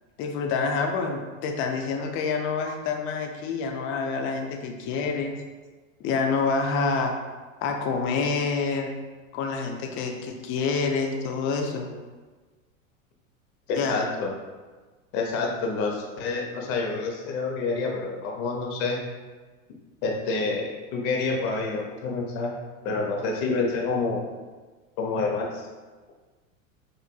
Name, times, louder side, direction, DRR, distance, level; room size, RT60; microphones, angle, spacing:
voice 1, 0.2-5.3 6.0-7.1 7.6-8.9 9.3-11.9 13.7-14.0, left 4 dB, 35° left, 3 dB, 0.4 m, -27 dB
voice 2, 13.7-14.3 15.1-19.0 20.0-22.5 22.8-24.2 25.0-25.7, left 3 dB, 50° left, 0 dB, 0.9 m, -28 dB
4.6 x 2.5 x 2.3 m, 1.3 s
hypercardioid pair, 110°, 41 cm